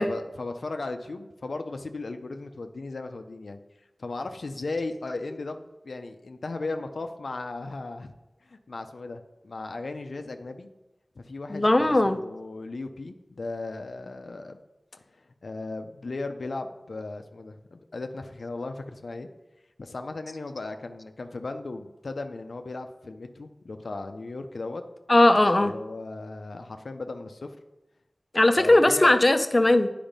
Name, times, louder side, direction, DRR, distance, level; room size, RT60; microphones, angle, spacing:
voice 1, 0.0-3.6 4.0-8.1 8.4-10.7 11.2-14.6 15.4-19.3 19.8-24.8 25.6-27.6 28.6-29.2, left 3 dB, 85° left, 6 dB, 0.5 m, -36 dB
voice 2, 11.5-12.2 25.1-25.7 28.3-29.9, left 1 dB, 35° left, 10 dB, 0.6 m, -19 dB
8.8 x 5.0 x 5.2 m, 1.0 s
wide cardioid pair, 50°, 0 cm